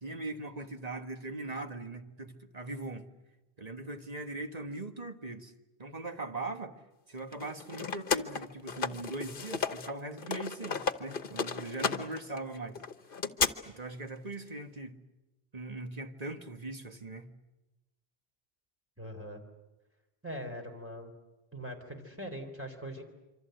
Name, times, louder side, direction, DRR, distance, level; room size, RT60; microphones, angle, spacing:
voice 1, 0.0-3.1 3.6-5.5 5.8-6.8 7.1-12.8 13.6-15.0 15.5-17.3, right 2 dB, 40° right, 1.6 m, -40 dB
sound 1, 7.3-9.9 10.2-13.5, left 5 dB, 60° left, 1.2 m, -33 dB
voice 2, 19.0-19.4 20.2-21.1 21.5-23.0, equal, 10° right, 3.7 m, -41 dB
26.5 x 25.5 x 7.9 m
omnidirectional pair, 1.1 m